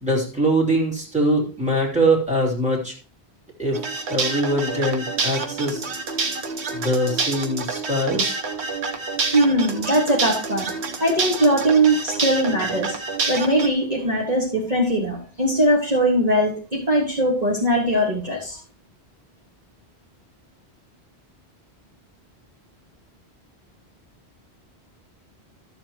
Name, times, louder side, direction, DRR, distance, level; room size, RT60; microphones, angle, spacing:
voice 1, 0.0-2.9 3.6-3.8 4.1-5.9 6.7-8.4, right 1 dB, 5° right, -3 dB, 2.9 m, -22 dB
sound 1, 3.7-13.7, right 4 dB, 85° right, 1.3 m, -28 dB
voice 2, 9.3-10.7 11.0-13.0 13.3-18.6, right 1 dB, 40° right, -3 dB, 1.9 m, -20 dB
13.0 x 7.0 x 3.0 m, 0.36 s
omnidirectional pair, 1.1 m